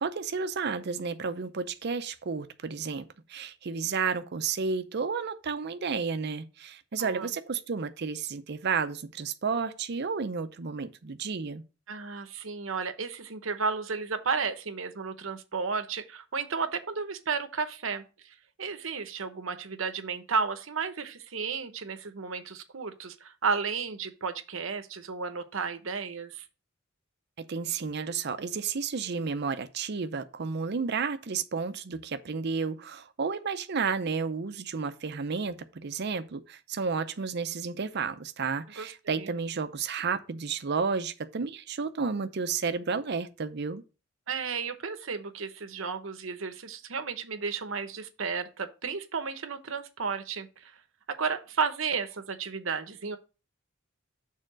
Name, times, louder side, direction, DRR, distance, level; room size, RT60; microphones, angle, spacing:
voice 1, 0.0-11.6 27.4-43.8, right 5 dB, 55° right, 0.6 m, -32 dB
voice 2, 11.9-26.4 38.8-39.3 44.3-50.7 51.1-53.2, right 5 dB, 85° right, 0.9 m, -33 dB
6.7 x 3.6 x 6.1 m
head